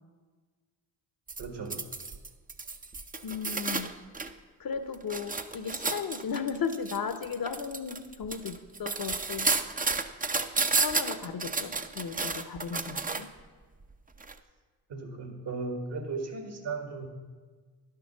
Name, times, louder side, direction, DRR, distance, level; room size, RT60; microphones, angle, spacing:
sound 1, 1.3-4.3 4.7-13.4 14.2-14.3, right 3 dB, 20° right, 0.7 m, -32 dB
voice 1, 1.4-1.8 14.9-17.1, right 4 dB, 60° right, 5 dB, 2.0 m, -36 dB
voice 2, 3.2-3.9 4.6-9.5 10.7-13.3, left 6 dB, 50° left, 11 dB, 0.9 m, -35 dB
11.0 x 6.7 x 6.0 m, 1.4 s
hypercardioid pair, 50°, 47 cm